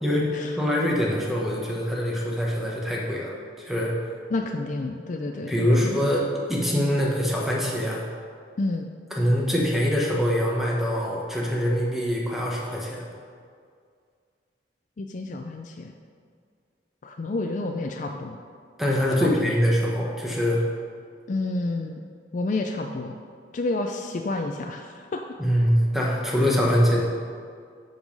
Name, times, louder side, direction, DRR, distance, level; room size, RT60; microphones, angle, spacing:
voice 1, 0.0-4.0 5.5-8.0 9.1-13.1 18.8-20.6 25.4-27.0, equal, ahead, -3 dB, 1.1 m, -24 dB
voice 2, 4.3-6.1 6.8-6.9 8.6-8.9 15.0-15.9 17.0-18.4 19.2-19.5 21.3-22.0 22.3-23.1 23.5-25.2, left 2 dB, 45° left, 3 dB, 0.4 m, -30 dB
7.8 x 5.4 x 5.3 m, 2.2 s
head